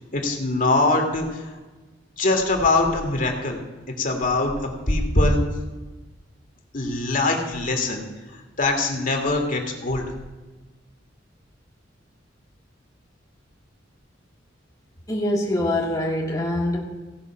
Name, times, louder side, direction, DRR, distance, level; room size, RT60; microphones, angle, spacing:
voice 1, 0.1-1.5 2.2-3.6 4.0-4.5 4.9-5.4 6.7-8.0 8.6-10.1, left 2 dB, 45° left, 3 dB, 1.8 m, -22 dB
voice 2, 15.1-16.8, left 1 dB, 20° left, -3 dB, 1.4 m, -24 dB
16.5 x 5.6 x 5.8 m, 1.2 s
head